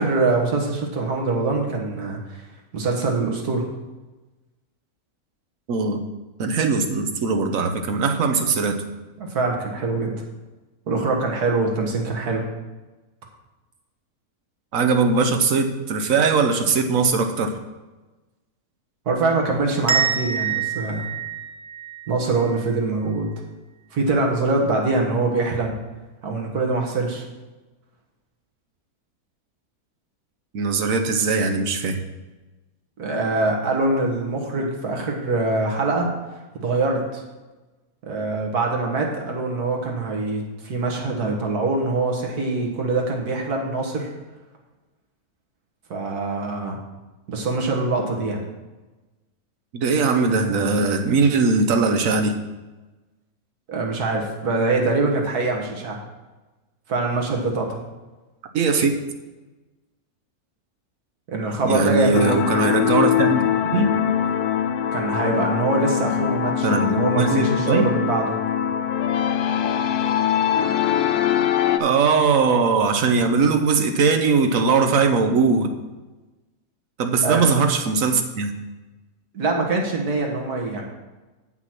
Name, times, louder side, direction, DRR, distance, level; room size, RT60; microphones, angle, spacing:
voice 1, 0.0-2.4 2.7-3.6 9.2-10.1 10.9-12.4 19.1-21.1 22.1-23.3 23.9-25.7 26.2-27.3 33.0-36.1 36.6-37.2 38.0-44.1 45.9-46.8 47.3-48.4 53.7-56.0 56.9-57.8 61.3-62.4 64.9-68.4 77.2-77.4 79.3-80.8, right 3 dB, 85° right, 1 dB, 2.0 m, -24 dB
voice 2, 5.7-6.0 6.4-8.8 14.7-17.5 30.5-32.0 49.7-52.4 58.5-58.9 61.6-63.4 63.7-64.0 66.6-67.9 71.8-75.7 77.0-78.6, right 4 dB, 65° right, 6 dB, 1.2 m, -20 dB
sound 1, 19.9-22.7, right 7 dB, 35° right, 0.8 m, -26 dB
sound 2, 62.1-71.8, left 10 dB, 85° left, 1.1 m, -22 dB
7.9 x 6.0 x 5.9 m, 1.2 s
omnidirectional pair, 1.6 m